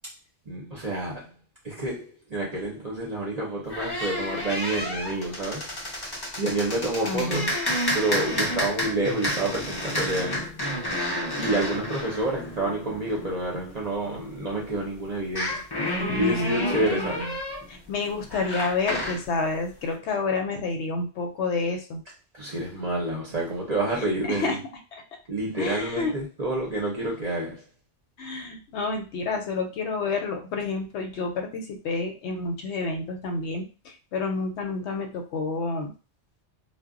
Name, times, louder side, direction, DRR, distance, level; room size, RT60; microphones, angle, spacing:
voice 1, 0.5-1.3 1.6-5.7 6.4-7.5 7.9-10.7 11.4-17.3 22.3-24.6 25.3-27.6, right 2 dB, 40° right, 0.6 m, -29 dB
sound 1, 3.7-14.1 15.2-19.3, left 1 dB, 35° left, 0.4 m, -30 dB
voice 2, 7.0-7.5 16.0-17.3 17.7-22.0 24.2-24.6 24.9-25.0 25.6-26.1 28.2-35.9, left 3 dB, 70° left, 0.8 m, -29 dB
2.1 x 2.0 x 3.6 m
omnidirectional pair, 1.3 m